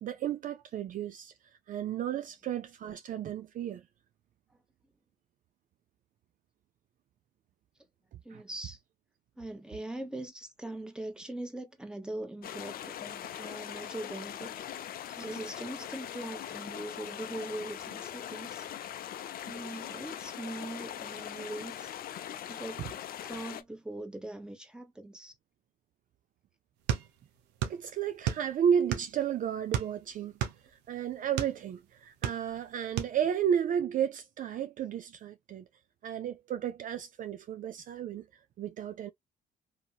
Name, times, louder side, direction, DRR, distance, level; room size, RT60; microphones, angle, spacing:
voice 1, 0.0-1.3 1.7-3.8 8.3-8.4 22.8-22.9 27.7-30.3 30.9-35.6 36.0-38.3 38.6-39.1, right 8 dB, 50° right, 0.4 m, -32 dB
voice 2, 8.2-8.8 9.4-14.6 15.1-18.7 19.4-21.9 22.5-22.8 23.2-25.3, right 1 dB, 5° right, 1.0 m, -41 dB
sound 1, 12.4-23.6, left 10 dB, 60° left, 0.5 m, -41 dB
sound 2, 26.9-27.8 28.1-29.2 29.7-31.6 32.0-32.7 33.0-33.2, right 10 dB, 90° right, 0.7 m, -32 dB
2.8 x 2.7 x 2.4 m
supercardioid pair, 75°, 17 cm